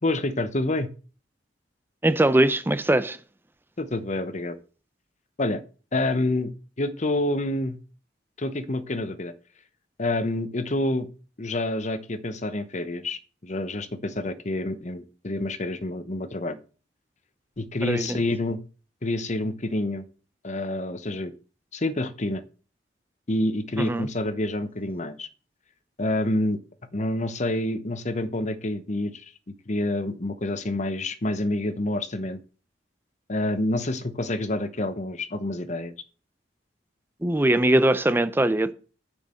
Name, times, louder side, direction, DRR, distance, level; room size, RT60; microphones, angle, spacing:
voice 1, 0.0-0.9 3.8-4.6 5.4-5.6 5.9-6.5 6.8-7.8 8.4-9.3 10.0-11.1 11.4-16.6 17.6-18.6 19.0-20.0 20.4-21.3 21.7-22.4 23.3-25.3 26.0-26.6 26.9-29.2 29.7-32.4 33.3-35.9, left 1 dB, 40° left, 0.9 m, -28 dB
voice 2, 2.0-3.2 17.8-18.2 23.8-24.1 37.2-38.7, right 1 dB, 10° right, 0.6 m, -21 dB
6.7 x 6.4 x 7.7 m
head